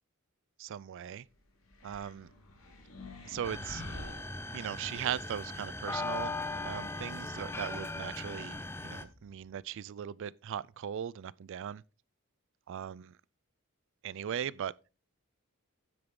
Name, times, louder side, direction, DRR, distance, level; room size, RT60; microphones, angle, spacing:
voice 1, 0.6-1.3 1.8-2.3 3.2-3.8 4.5-6.4 6.6-11.8 12.7-13.1 14.0-14.7, right 9 dB, 60° right, 0.4 m, -39 dB
sound 1, 1.7-5.0, left 2 dB, 75° left, 2.8 m, -48 dB
sound 2, 3.4-9.0, left 2 dB, 10° left, 0.6 m, -39 dB
sound 3, 4.3-9.7, equal, 30° left, 1.9 m, -60 dB
9.6 x 7.9 x 3.8 m
head